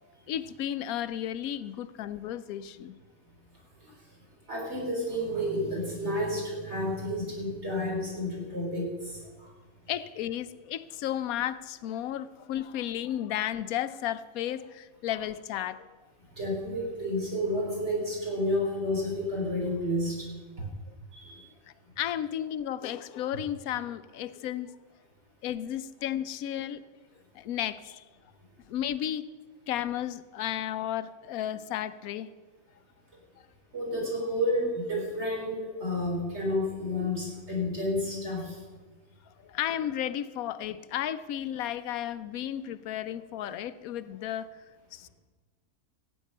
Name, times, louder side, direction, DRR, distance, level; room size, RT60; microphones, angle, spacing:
voice 1, 0.3-3.0 9.9-16.0 22.0-24.7 25.4-26.8 27.3-28.0 28.7-29.3 29.7-32.3 39.4-44.5 44.9-45.1, left 11 dB, 90° left, 14 dB, 1.1 m, -33 dB
voice 2, 4.5-9.5 16.4-20.3 21.1-21.4 33.7-38.6, left 1 dB, 50° right, -2 dB, 3.9 m, -30 dB
16.5 x 8.4 x 5.5 m, 1.4 s
omnidirectional pair, 1.5 m